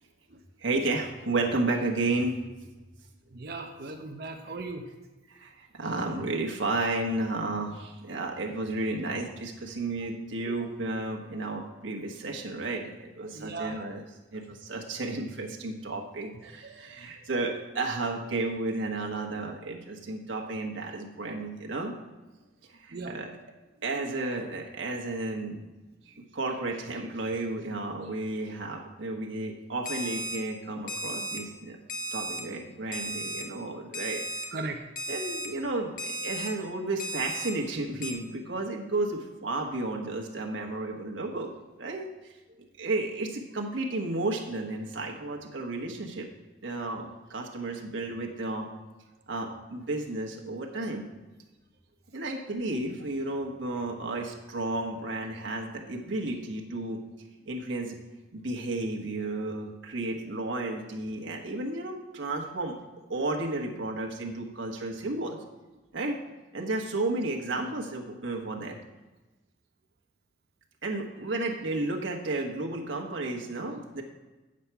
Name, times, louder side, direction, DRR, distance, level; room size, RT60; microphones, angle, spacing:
voice 1, 0.6-2.4 5.3-14.0 14.3-21.9 22.8-23.3 23.8-25.7 26.1-31.8 32.1-34.2 35.1-41.5 41.8-42.1 42.8-46.3 46.6-48.7 49.3-51.1 52.1-57.0 57.4-58.0 58.3-62.8 63.1-65.4 65.9-66.2 66.5-68.8 70.8-74.0, right 2 dB, 80° right, 0 dB, 1.2 m, -32 dB
voice 2, 3.3-4.9 10.5-10.6 13.2-13.8 14.3-14.4 16.4-17.2 22.9-23.3 23.9-24.0 34.5-34.8, right 3 dB, 50° right, 4 dB, 0.7 m, -39 dB
Alarm, 29.9-30.4 30.9-31.4 31.9-32.4 32.9-33.4 33.9-34.4 35.0-35.5 36.0-36.5 37.0-37.5 38.0-38.1, right 1 dB, 45° left, 0.9 m, -34 dB
8.6 x 7.4 x 4.6 m, 1.1 s
head